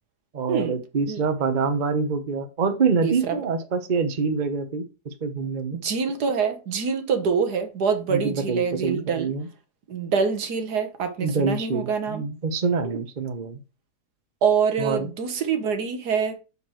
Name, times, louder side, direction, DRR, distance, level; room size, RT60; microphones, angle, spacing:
voice 1, 0.3-5.8 8.1-9.5 11.2-13.6 14.8-15.1, right 4 dB, 35° right, 1.0 m, -26 dB
voice 2, 3.0-3.4 5.7-9.3 9.9-12.2 12.8-13.0 14.4-16.4, right 6 dB, 75° right, 1.7 m, -25 dB
6.8 x 6.6 x 3.0 m
omnidirectional pair, 1.7 m